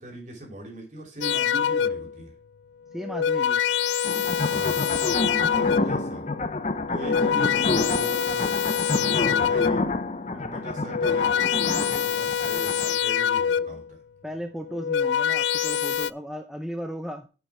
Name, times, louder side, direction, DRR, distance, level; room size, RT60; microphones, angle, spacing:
voice 1, 0.0-2.3 4.5-4.8 5.5-6.3 6.9-9.9 10.5-14.0, right 1 dB, 40° right, 1 dB, 2.9 m, -39 dB
sound 1, 1.2-2.2 2.9-6.1 6.8-10.0 10.7-13.9 14.6-16.1, left 8 dB, 75° left, 0.3 m, -25 dB
voice 2, 2.9-3.6 5.9-6.0 10.3-10.6 14.2-17.3, equal, ahead, 5 dB, 0.6 m, -36 dB
sound 2, 4.0-12.9, left 2 dB, 35° left, 0.6 m, -28 dB
10.0 x 5.4 x 4.7 m, 0.33 s
head